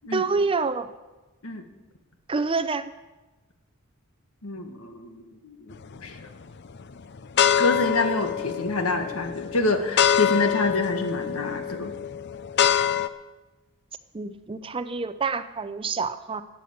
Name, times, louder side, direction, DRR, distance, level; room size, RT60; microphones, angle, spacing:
voice 1, 0.1-0.9 2.3-2.9 14.1-16.4, right 4 dB, 25° right, 11 dB, 0.5 m, -27 dB
voice 2, 4.4-6.3 7.6-11.9, left 2 dB, 75° left, 6 dB, 1.6 m, -27 dB
sound 1, 5.7-6.2 6.8-13.1, left 9 dB, 50° left, 0.5 m, -25 dB
13.0 x 9.4 x 7.9 m, 1.2 s
head